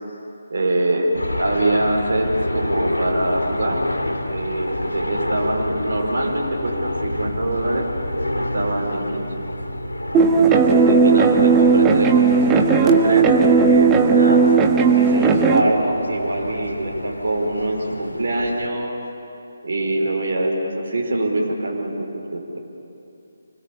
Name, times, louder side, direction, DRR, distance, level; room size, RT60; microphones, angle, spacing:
voice 1, 0.5-3.8 4.3-7.9 8.3-9.3 10.3-12.1 12.5-14.4 14.9-19.0 19.6-22.1 22.3-22.6, right 1 dB, 55° right, -1 dB, 4.9 m, -24 dB
sound 1, 1.1-18.7, left 1 dB, 80° left, 2.6 m, -28 dB
sound 2, 10.1-15.6, right 5 dB, 15° right, 1.6 m, -15 dB
30.0 x 21.5 x 8.7 m, 2.8 s
figure-of-eight pair, 150°, 0 cm